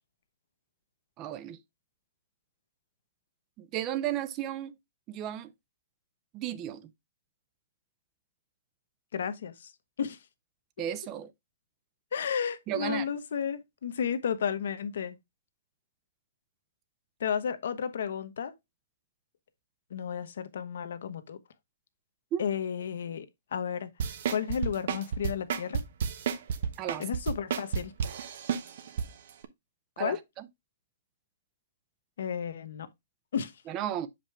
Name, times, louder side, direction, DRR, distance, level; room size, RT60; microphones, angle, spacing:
voice 1, 1.2-1.6 3.6-4.7 5.1-5.5 6.3-6.9 10.8-11.3 12.7-13.0 22.3-22.5 26.8-27.0 30.0-30.5 33.7-34.1, right 11 dB, 30° right, 0.8 m, -34 dB
voice 2, 9.1-9.7 10.0-10.2 12.1-15.2 17.2-18.5 19.9-21.4 22.4-23.3 23.5-23.9 24.3-25.8 27.0-27.9 30.0-30.2 32.2-32.9 33.3-33.5, left 7 dB, 75° left, 1.0 m, -32 dB
sound 1, 24.0-29.1 29.4-29.5, right 7 dB, 65° right, 1.1 m, -31 dB
7.0 x 5.2 x 3.3 m
hypercardioid pair, 135°, 0 cm